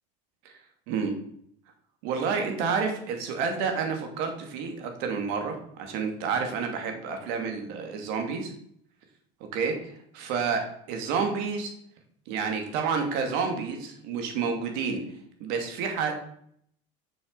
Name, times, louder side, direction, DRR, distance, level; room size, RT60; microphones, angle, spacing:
voice 1, 0.9-1.2 2.0-8.5 9.4-11.7 12.3-15.0 15.4-16.1, right 5 dB, 70° right, 4 dB, 2.7 m, -29 dB
7.0 x 6.7 x 6.9 m, 0.67 s
supercardioid pair, 110°, 16 cm